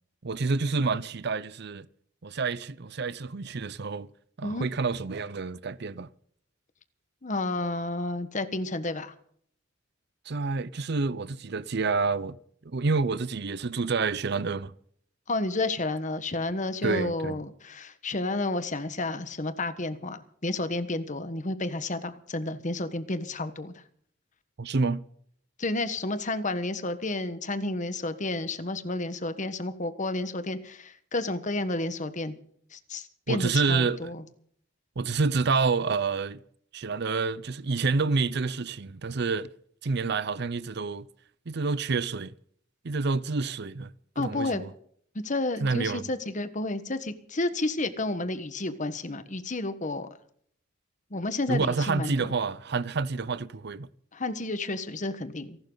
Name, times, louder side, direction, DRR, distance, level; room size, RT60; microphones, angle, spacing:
voice 1, 0.2-1.9 2.2-4.1 4.4-6.1 10.3-12.4 12.7-14.7 16.8-17.4 24.6-25.0 33.3-34.1 35.0-36.4 36.7-39.5 39.8-41.1 41.5-42.3 42.8-44.7 45.6-46.1 51.5-53.9, right 4 dB, 55° right, 0.7 m, -28 dB
voice 2, 7.2-9.1 15.3-23.7 25.6-32.3 32.7-34.2 44.1-44.6 45.1-50.1 51.1-52.3 54.1-55.6, left 2 dB, 40° left, 1.4 m, -31 dB
28.5 x 12.0 x 4.0 m
head